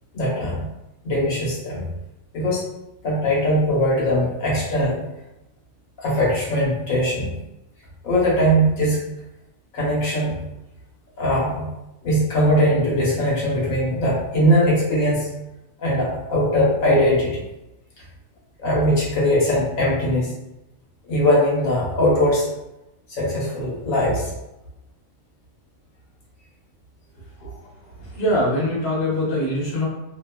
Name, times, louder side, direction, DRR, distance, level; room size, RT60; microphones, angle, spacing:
voice 1, 0.1-0.6 1.0-1.9 2.3-2.7 3.0-5.0 6.0-7.3 8.0-9.0 9.7-10.3 11.2-11.7 12.0-15.3 15.8-17.4 18.6-20.3 21.1-22.5 23.1-24.3, equal, 90° left, -6 dB, 1.3 m, -20 dB
voice 2, 28.0-29.9, left 1 dB, 55° left, -7 dB, 1.2 m, -23 dB
2.8 x 2.3 x 2.2 m, 0.92 s
omnidirectional pair, 1.3 m